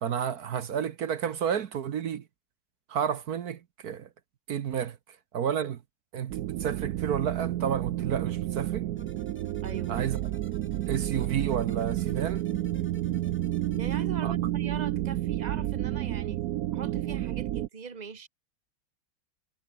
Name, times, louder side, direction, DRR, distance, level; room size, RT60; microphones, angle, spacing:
voice 1, 0.0-2.2 2.9-4.1 4.5-5.0 5.3-5.8 6.1-8.9 9.9-10.2 10.9-12.5 14.2-14.3, right 8 dB, 55° right, 1.2 m, -31 dB
sound 1, 6.3-17.7, right 14 dB, 75° right, 0.8 m, -30 dB
sound 2, 9.0-14.0, equal, 5° left, 4.8 m, -54 dB
voice 2, 9.6-10.0 13.7-16.4 16.7-18.3, right 5 dB, 20° right, 1.6 m, -40 dB
omnidirectional pair, 2.2 m